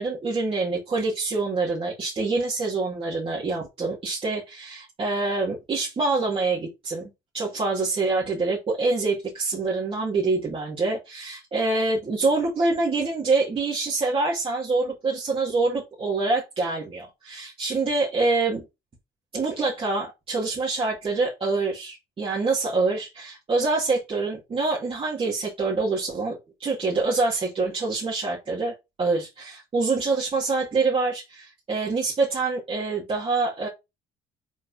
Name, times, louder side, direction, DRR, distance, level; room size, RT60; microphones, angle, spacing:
voice 1, 0.0-18.6 19.3-33.7, right 3 dB, 35° right, -4 dB, 2.3 m, -26 dB
4.9 x 4.2 x 5.5 m, 0.23 s
cardioid pair, 110°, 17 cm